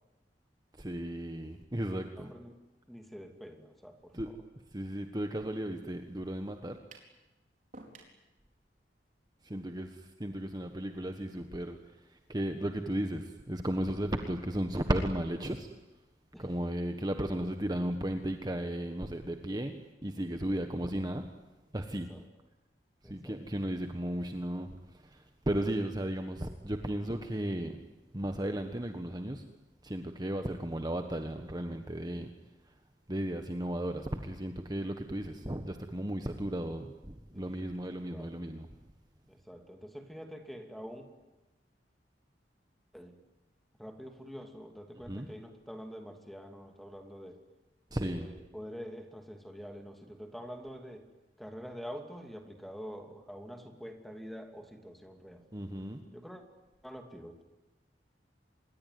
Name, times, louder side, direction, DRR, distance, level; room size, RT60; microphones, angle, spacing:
voice 1, 0.8-2.3 4.1-4.3 4.7-6.8 9.4-11.8 12.1-15.7 16.4-21.3 21.7-22.1 23.0-27.9 28.1-29.5 29.8-32.3 33.1-38.7 45.1-45.3 47.9-48.3 55.5-56.0, right 1 dB, 25° right, 6 dB, 1.4 m, -35 dB
voice 2, 2.2-4.4 9.5-9.7 16.3-16.5 20.5-20.8 21.9-22.3 23.0-23.4 25.6-25.8 26.0-26.1 37.3-38.3 39.3-41.1 42.9-43.2 43.8-47.4 47.9-51.1 51.4-55.4 56.1-56.4 56.8-57.4, equal, ahead, 5 dB, 2.7 m, -46 dB
sound 1, 6.9-7.2 7.7-8.2, right 2 dB, 45° right, 4.7 m, -51 dB
26.5 x 21.5 x 9.5 m, 1.1 s
head